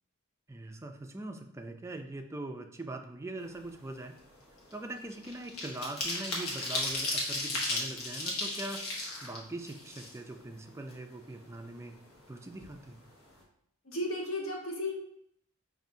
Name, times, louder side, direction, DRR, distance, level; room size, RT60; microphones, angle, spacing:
voice 1, 0.5-4.1 4.7-8.8 9.2-11.9 12.3-13.0, right 2 dB, 15° right, 5 dB, 0.3 m, -42 dB
sound 1, 3.5-3.7 4.1-10.5 10.9-11.0 11.3-12.3 12.6-12.7 13.0-13.3, left 2 dB, 90° left, 1.1 m, -35 dB
voice 2, 13.8-14.9, left 1 dB, 75° left, -1 dB, 1.1 m, -34 dB
5.3 x 2.6 x 2.6 m, 0.71 s
head